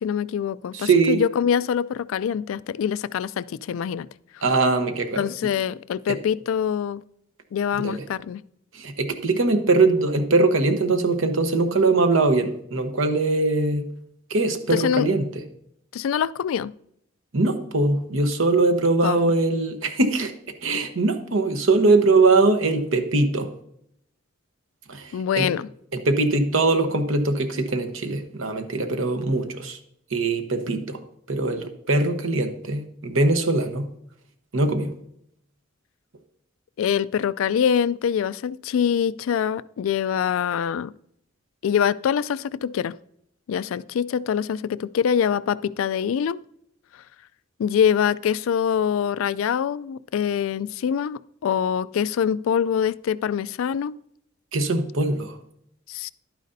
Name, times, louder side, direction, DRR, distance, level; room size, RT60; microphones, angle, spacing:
voice 1, 0.0-4.1 5.2-7.0 7.5-8.4 14.7-15.1 15.9-16.7 19.0-19.3 25.1-25.7 36.8-40.9 41.6-42.9 43.5-46.4 47.6-54.0 55.9-56.1, left 8 dB, 75° left, 18 dB, 0.3 m, -24 dB
voice 2, 0.7-1.2 4.4-5.3 6.1-6.2 7.8-8.0 8.7-13.9 14.3-15.4 17.3-20.3 20.6-23.5 24.9-25.5 25.9-29.8 30.1-31.0 31.3-33.9 34.5-34.9 54.5-55.4, right 3 dB, 70° right, 7 dB, 1.0 m, -22 dB
11.5 x 9.2 x 2.7 m, 0.72 s
head